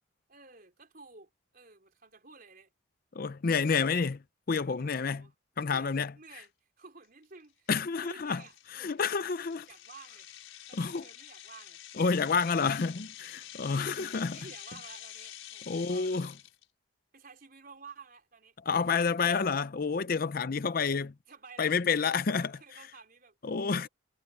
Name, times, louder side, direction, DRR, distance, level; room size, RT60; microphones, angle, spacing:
voice 1, 0.3-2.7 4.8-7.7 8.0-10.3 10.7-11.8 14.3-16.2 17.1-18.5 21.3-21.8 22.2-23.4 23.8-23.9, right 4 dB, 45° right, 4.4 m, -53 dB
voice 2, 3.2-4.2 4.5-5.2 5.6-6.1 7.7-8.4 8.7-9.7 10.7-11.0 12.0-14.4 15.7-16.3 18.7-21.1 21.6-22.5 23.4-23.9, left 5 dB, 45° left, 0.5 m, -29 dB
sound 1, 6.4-6.5 7.0-7.2 7.7-7.8 8.3-16.6, left 12 dB, 80° left, 5.6 m, -48 dB
head